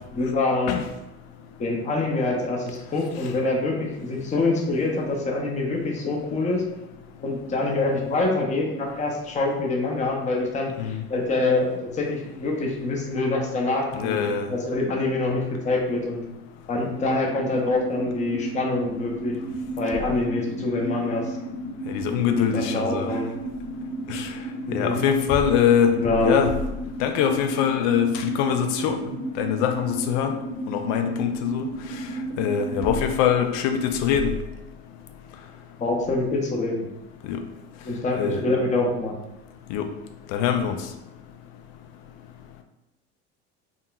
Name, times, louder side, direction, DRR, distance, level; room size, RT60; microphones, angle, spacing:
voice 1, 0.1-0.8 1.6-6.6 7.2-14.2 14.5-16.2 16.7-19.4 19.8-21.4 22.3-23.3 24.7-25.0 26.0-26.5 35.8-36.9 37.8-39.1, left 2 dB, 20° left, 0 dB, 0.6 m, -25 dB
voice 2, 14.0-14.5 21.9-23.1 24.1-24.3 24.7-26.5 27.0-29.0 29.4-30.3 30.7-31.7 32.4-34.3 37.3-37.4 38.2-38.4 39.7-39.9 40.3-40.8, left 8 dB, 70° left, 7 dB, 0.5 m, -23 dB
sound 1, 16.9-33.0, right 2 dB, 15° right, 0.8 m, -33 dB
3.6 x 2.2 x 2.3 m, 0.93 s
supercardioid pair, 90°, 32 cm